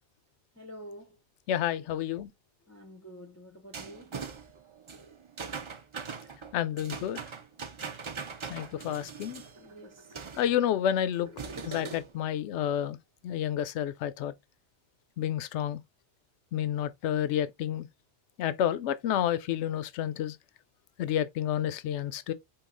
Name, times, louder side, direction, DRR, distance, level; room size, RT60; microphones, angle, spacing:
voice 1, 0.6-1.2 2.7-4.2 6.2-6.3 9.6-10.1, equal, 15° left, 0.6 m, -48 dB
voice 2, 1.5-2.3 6.5-7.2 8.5-9.4 10.4-13.0 13.2-14.3 15.2-15.8 16.5-17.9 18.4-20.4 21.0-22.3, left 10 dB, 80° left, 0.9 m, -30 dB
sound 1, 3.7-10.5 11.1-12.2, right 5 dB, 35° right, 0.5 m, -41 dB
4.7 x 2.7 x 3.8 m
omnidirectional pair, 1.2 m